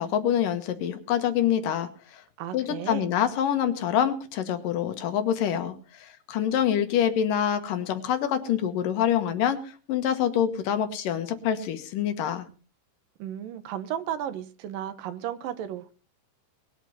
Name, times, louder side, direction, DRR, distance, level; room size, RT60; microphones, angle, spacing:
voice 1, 0.0-2.2 2.5-12.5, left 9 dB, 75° left, 9 dB, 3.0 m, -26 dB
voice 2, 2.4-3.1 13.2-15.9, right 10 dB, 75° right, 13 dB, 2.7 m, -34 dB
21.0 x 8.3 x 5.5 m, 0.37 s
omnidirectional pair, 4.0 m